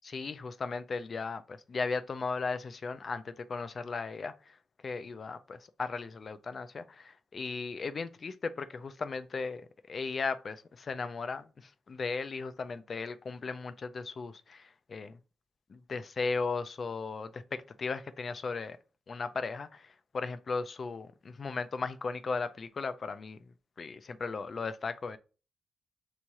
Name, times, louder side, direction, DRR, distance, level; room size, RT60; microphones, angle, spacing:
voice 1, 0.0-4.6 4.8-15.1 15.7-18.8 19.1-23.4 23.8-25.2, left 4 dB, 35° left, 0.3 m, -36 dB
3.5 x 3.1 x 4.2 m
cardioid pair, 140°, 0 cm